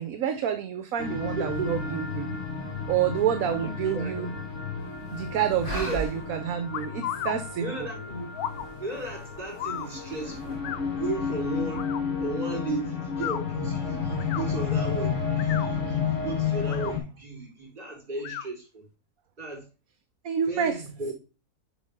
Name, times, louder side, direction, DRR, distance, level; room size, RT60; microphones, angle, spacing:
voice 1, 0.0-2.3 2.9-4.3 5.1-7.7 20.2-20.7, right 9 dB, 65° right, 1.1 m, -28 dB
sound 1, 1.0-17.0, left 6 dB, 55° left, 2.2 m, -31 dB
voice 2, 1.4-1.8 3.4-4.3 5.6-6.0 7.6-8.3 8.8-10.7 11.0-11.9 12.2-18.9 19.4-19.7 20.5-21.1, right 3 dB, 35° right, 4.3 m, -35 dB
sound 2, 1.5-10.6, right 1 dB, 35° left, 2.5 m, -43 dB
sound 3, 6.7-7.4 8.3-8.7 9.6-9.9 10.6-10.8 11.7-12.0 13.1-13.4 14.1-14.4 15.3-15.7 16.6-16.9 18.2-18.5, left 11 dB, 75° left, 1.2 m, -34 dB
8.5 x 5.4 x 3.6 m
omnidirectional pair, 1.6 m